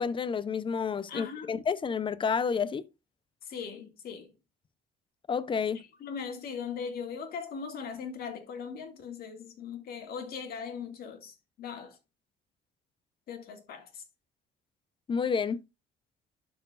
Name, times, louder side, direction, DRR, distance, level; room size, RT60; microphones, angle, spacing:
voice 1, 0.0-2.9 5.3-5.8 15.1-15.6, left 6 dB, 30° left, 0.7 m, -30 dB
voice 2, 1.1-1.6 3.4-4.3 5.7-12.0 13.3-14.0, left 6 dB, 65° left, 2.1 m, -40 dB
12.0 x 4.6 x 2.5 m
cardioid pair, 110°, 17 cm